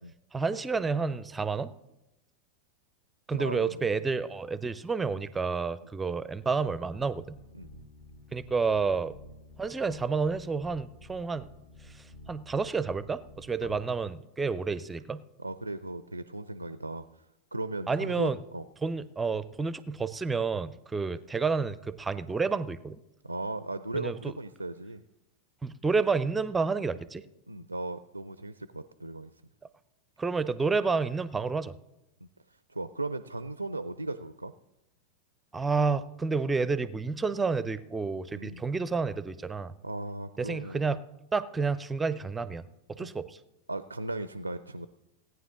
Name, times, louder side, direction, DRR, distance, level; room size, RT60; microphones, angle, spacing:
voice 1, 0.3-1.7 3.3-7.4 8.3-9.2 9.6-11.5 12.3-15.2 17.9-18.4 18.8-23.0 23.9-24.1 25.6-27.2 30.2-31.7 35.5-39.7 40.4-41.0 41.3-42.6 42.9-43.4, right 4 dB, 10° right, 16 dB, 0.5 m, -30 dB
voice 2, 3.4-3.8 7.5-7.7 13.6-13.7 15.4-17.2 17.5-18.7 23.2-25.0 27.5-29.3 32.7-34.5 38.3-38.6 39.8-40.9 43.0-43.1 43.7-44.9, right 2 dB, 85° right, 13 dB, 0.4 m, -37 dB
sound 1, 6.6-13.8, left 1 dB, 55° left, 1.6 m, -52 dB
17.0 x 9.4 x 3.7 m, 0.93 s
figure-of-eight pair, 90°, 0 cm